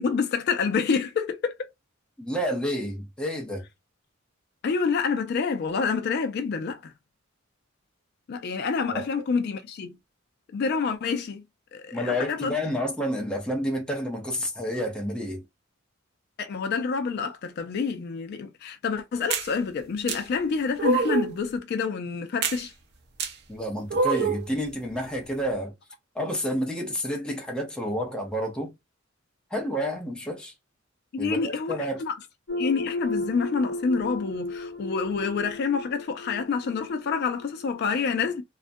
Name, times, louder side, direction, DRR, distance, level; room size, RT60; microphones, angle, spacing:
voice 1, 0.0-1.5 4.6-6.9 8.3-9.9 10.5-11.4 11.7-12.5 16.4-22.7 31.1-32.1 32.6-38.4, left 5 dB, 55° left, 0.3 m, -27 dB
voice 2, 2.2-3.6 8.9-9.0 11.9-15.4 23.5-25.7 26.1-28.7 29.5-30.5 31.2-32.0, equal, 5° left, 0.6 m, -29 dB
sound 1, 19.3-19.5 20.1-20.2 20.8-21.3 22.4-22.6 23.2-23.3 23.9-24.5, right 4 dB, 55° right, 0.5 m, -25 dB
sound 2, 32.5-37.9, left 2 dB, 80° left, 0.8 m, -35 dB
2.4 x 2.1 x 2.5 m
head